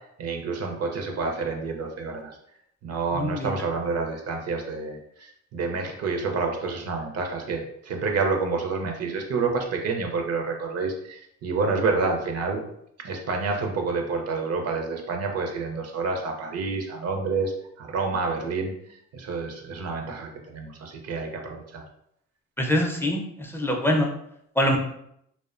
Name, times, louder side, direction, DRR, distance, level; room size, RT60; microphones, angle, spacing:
voice 1, 0.0-2.4 2.8-12.6 13.0-21.8, right 4 dB, 55° right, 3 dB, 0.5 m, -28 dB
voice 2, 3.1-3.5 22.6-24.1 24.6-24.8, equal, 10° left, 1 dB, 0.4 m, -24 dB
2.5 x 2.1 x 2.4 m, 0.74 s
cardioid pair, 90°, 30 cm